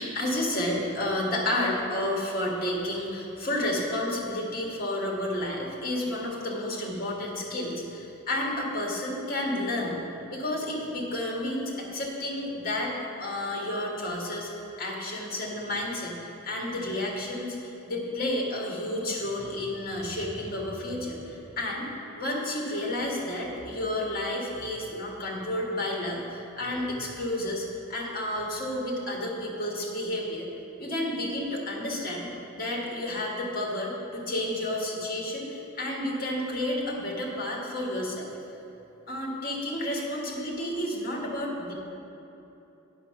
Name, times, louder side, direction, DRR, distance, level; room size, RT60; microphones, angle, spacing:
voice 1, 0.0-10.0 10.3-12.9 13.2-14.5 14.8-30.5 30.8-38.3 39.1-41.7, left 1 dB, 45° left, -2 dB, 1.7 m, -31 dB
8.4 x 6.5 x 5.8 m, 3.0 s
head